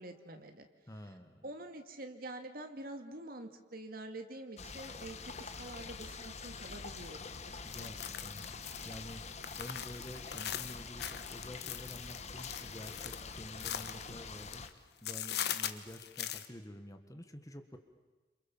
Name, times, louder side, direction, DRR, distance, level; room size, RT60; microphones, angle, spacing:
voice 1, 0.0-0.7 1.4-7.3 7.8-7.9, right 1 dB, 55° right, 6 dB, 2.3 m, -46 dB
voice 2, 0.9-1.4 7.6-17.8, equal, 20° left, 7 dB, 1.6 m, -49 dB
sound 1, 4.6-14.7, left 4 dB, 40° left, 1.4 m, -46 dB
sound 2, 7.7-14.7 15.0-16.5, left 10 dB, 65° left, 1.3 m, -41 dB
28.0 x 27.0 x 7.3 m, 1.2 s
head